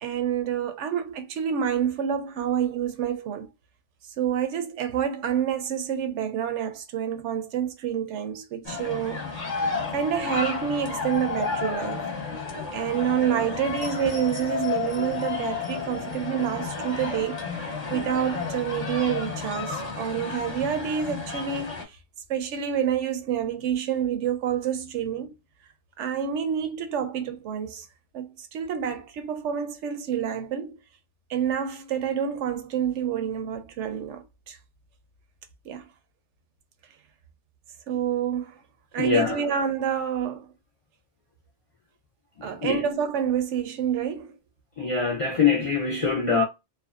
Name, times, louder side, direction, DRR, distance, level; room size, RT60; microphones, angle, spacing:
voice 1, 0.0-3.5 4.2-9.2 9.6-12.1 12.7-17.4 17.9-22.0 22.3-25.3 26.0-27.9 28.1-30.8 31.3-34.6 35.6-35.9 37.9-38.6 38.9-40.5 42.4-44.4, right 8 dB, 80° right, 0.9 m, -28 dB
sound 1, 8.6-21.8, left 4 dB, 40° left, 0.8 m, -32 dB
voice 2, 39.0-39.4 42.6-42.8 44.8-46.4, left 5 dB, 55° left, 0.3 m, -23 dB
2.5 x 2.3 x 2.4 m
omnidirectional pair, 1.2 m